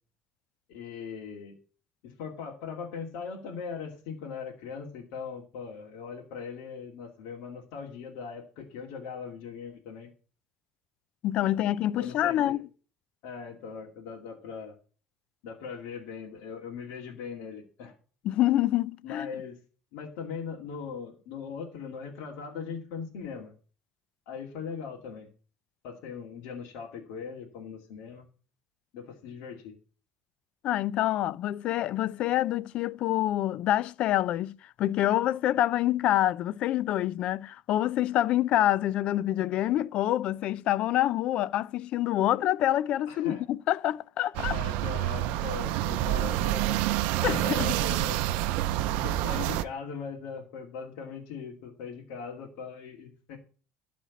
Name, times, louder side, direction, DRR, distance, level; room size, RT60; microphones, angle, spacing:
voice 1, 0.7-1.6 2.0-10.1 12.0-12.6 13.2-14.8 15.4-17.9 19.0-19.6 19.9-23.5 24.3-25.3 25.8-28.3 28.9-29.7 43.1-43.4 44.5-46.9 47.4-48.2 48.9-53.4, left 6 dB, 75° left, 2.4 m, -40 dB
voice 2, 11.2-12.7 18.2-19.3 30.6-44.6 47.2-47.7, left 13 dB, 55° left, 0.5 m, -26 dB
sound 1, 44.3-49.6, right 14 dB, 75° right, 0.6 m, -28 dB
12.5 x 4.3 x 8.3 m
cardioid pair, 125°, 2 cm